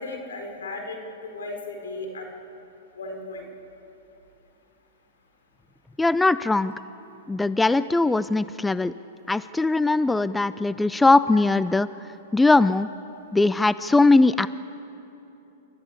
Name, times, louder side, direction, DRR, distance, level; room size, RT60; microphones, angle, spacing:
voice 1, 0.0-2.3 3.0-3.5, left 2 dB, 90° left, 3 dB, 4.2 m, -35 dB
voice 2, 6.0-6.7 7.3-8.9 9.3-11.9 12.3-12.9 13.3-14.5, left 3 dB, 10° left, 15 dB, 0.4 m, -20 dB
28.5 x 13.5 x 8.5 m, 3.0 s
hypercardioid pair, 125°, 0 cm